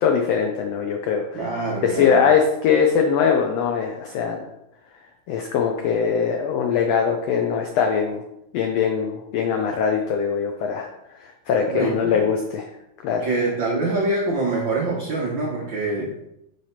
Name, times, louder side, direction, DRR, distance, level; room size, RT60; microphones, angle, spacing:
voice 1, 0.0-1.5 1.8-4.5 5.3-8.2 8.5-10.9 11.2-12.7 13.0-13.3, left 6 dB, 85° left, 3 dB, 1.4 m, -21 dB
voice 2, 1.3-2.2 11.7-12.2 13.2-16.1, right 2 dB, 85° right, -3 dB, 1.0 m, -25 dB
6.6 x 3.3 x 5.7 m, 0.85 s
omnidirectional pair, 3.6 m